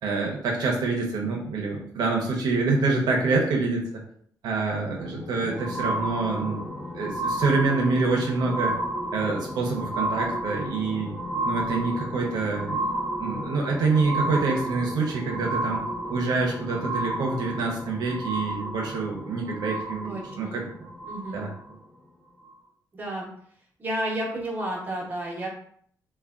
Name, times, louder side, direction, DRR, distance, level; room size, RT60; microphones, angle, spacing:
voice 1, 0.0-3.9 4.4-8.8 9.1-11.2 11.4-12.8 13.2-15.8 16.1-20.9 21.3-21.5, right 3 dB, 75° right, 0 dB, 0.6 m, -26 dB
sound 1, 4.9-21.7 22.4-22.5, right 1 dB, 15° left, 0.6 m, -32 dB
voice 2, 20.0-20.5 21.1-21.4 22.9-23.3 23.8-25.5, right 1 dB, 25° right, -3 dB, 0.8 m, -31 dB
3.3 x 2.1 x 2.4 m, 0.63 s
wide cardioid pair, 160°, 7 cm